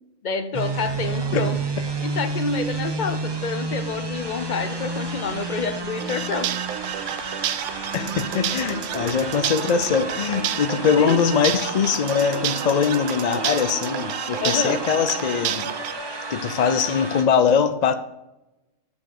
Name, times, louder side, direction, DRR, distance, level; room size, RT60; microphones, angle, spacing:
voice 1, 0.2-1.6 2.0-6.5 11.0-11.2 14.4-14.8, left 4 dB, 40° left, 11 dB, 0.8 m, -28 dB
sound 1, 0.5-17.2, right 3 dB, 25° right, 0.7 m, -31 dB
sound 2, 6.0-15.9, right 11 dB, 70° right, 0.9 m, -30 dB
voice 2, 7.9-15.7 16.3-17.9, left 6 dB, 60° left, 10 dB, 0.4 m, -22 dB
7.0 x 7.0 x 6.5 m, 0.95 s
omnidirectional pair, 1.3 m